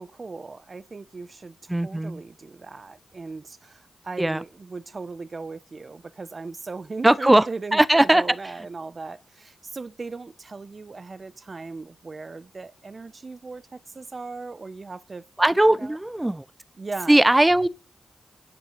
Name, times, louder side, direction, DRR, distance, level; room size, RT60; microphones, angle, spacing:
voice 1, 0.0-15.2 15.8-16.0 16.8-17.2, right 3 dB, 45° right, 0.8 m, -38 dB
voice 2, 1.7-2.2 4.2-4.4 7.0-7.5 7.7-8.2 15.4-16.4 17.1-17.7, right 1 dB, 15° right, 0.7 m, -19 dB
10.5 x 5.6 x 8.1 m
cardioid pair, 55°, 0 cm